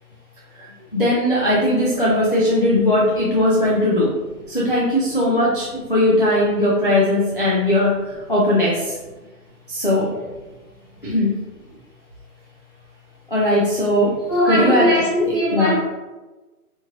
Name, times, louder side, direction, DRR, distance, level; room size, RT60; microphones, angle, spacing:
voice 1, 0.9-4.1 4.5-9.0 9.7-10.1 11.0-11.3 13.3-14.1 14.5-14.9 15.2-15.8, left 1 dB, 40° left, -6 dB, 0.4 m, -19 dB
voice 2, 14.3-15.8, left 1 dB, 15° left, -12 dB, 0.8 m, -19 dB
4.3 x 2.9 x 2.4 m, 1.2 s
hypercardioid pair, 170°, 46 cm